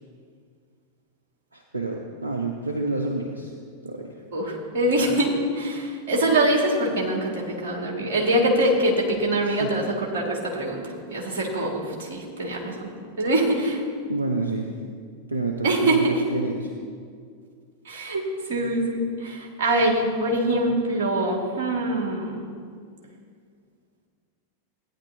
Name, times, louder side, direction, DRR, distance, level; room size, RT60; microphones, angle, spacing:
voice 1, 1.5-3.5 3.8-4.2 9.4-9.7 14.1-14.7 15.3-16.7, right 2 dB, 80° right, 2 dB, 0.7 m, -29 dB
voice 2, 4.3-12.9 13.2-13.8 15.6-16.2 17.9-18.2 18.5-22.4, right 1 dB, 55° right, -1 dB, 2.1 m, -24 dB
15.5 x 9.8 x 2.8 m, 2.1 s
figure-of-eight pair, 90°, 0 cm